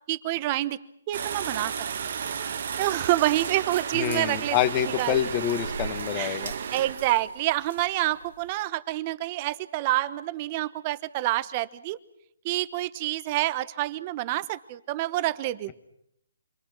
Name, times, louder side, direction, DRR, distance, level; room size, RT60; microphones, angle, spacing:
voice 1, 0.1-0.8 1.1-1.7 2.1-2.2 2.8-4.6 4.8-5.2 6.2-6.4 6.7-12.0 12.4-15.7, right 16 dB, 30° right, 16 dB, 1.0 m, -27 dB
sound 1, 1.1-8.5, right 7 dB, 60° right, 1.5 m, -33 dB
voice 2, 3.9-6.5, left 11 dB, 25° left, 10 dB, 1.7 m, -27 dB
29.0 x 23.5 x 6.1 m, 0.76 s
hypercardioid pair, 145°, 0 cm